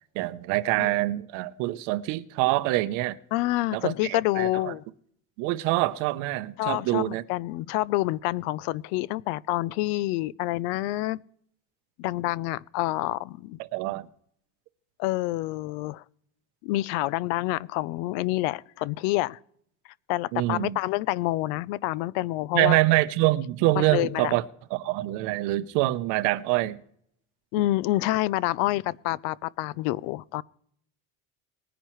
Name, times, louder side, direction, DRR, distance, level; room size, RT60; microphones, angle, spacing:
voice 1, 0.1-3.2 3.7-4.7 5.4-7.2 13.7-14.1 20.3-20.8 22.5-24.4 24.7-26.8, right 18 dB, 60° right, 0.7 m, -25 dB
voice 2, 3.3-4.8 6.6-11.2 12.0-13.6 15.0-16.0 16.6-19.4 20.1-22.8 23.7-24.3 27.5-30.4, left 17 dB, 65° left, 0.5 m, -27 dB
20.0 x 10.0 x 3.1 m
cardioid pair, 180°, 35 cm